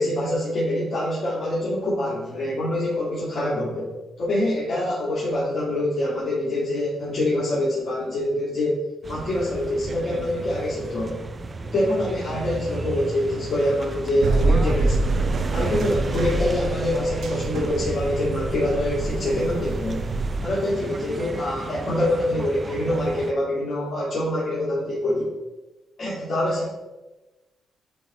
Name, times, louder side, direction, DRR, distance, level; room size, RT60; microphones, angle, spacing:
voice 1, 0.0-3.9 4.2-8.8 9.1-11.2 11.6-15.1 15.5-20.0 20.4-25.3 26.0-26.7, left 1 dB, 55° left, -8 dB, 2.2 m, -25 dB
sound 1, 9.0-23.3, right 3 dB, 30° right, 0.4 m, -34 dB
sound 2, 14.2-20.5, right 2 dB, 70° right, 0.9 m, -25 dB
9.1 x 3.5 x 4.2 m, 1.1 s
cardioid pair, 90°, 0 cm